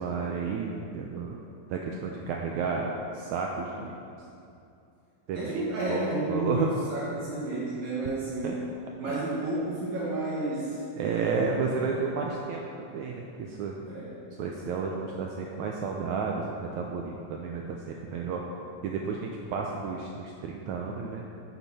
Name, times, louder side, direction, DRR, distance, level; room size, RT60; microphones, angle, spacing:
voice 1, 0.0-1.4 1.7-3.9 5.3-5.6 5.9-6.7 8.4-8.6 9.1-9.2 11.0-13.8 14.4-18.4 18.8-21.2, right 5 dB, 90° right, 0 dB, 1.7 m, -32 dB
voice 2, 5.3-6.7 6.9-8.5 9.0-11.5 11.9-12.0 13.9-14.1, right 2 dB, 60° right, -8 dB, 2.7 m, -31 dB
10.0 x 7.2 x 4.1 m, 2.6 s
omnidirectional pair, 3.9 m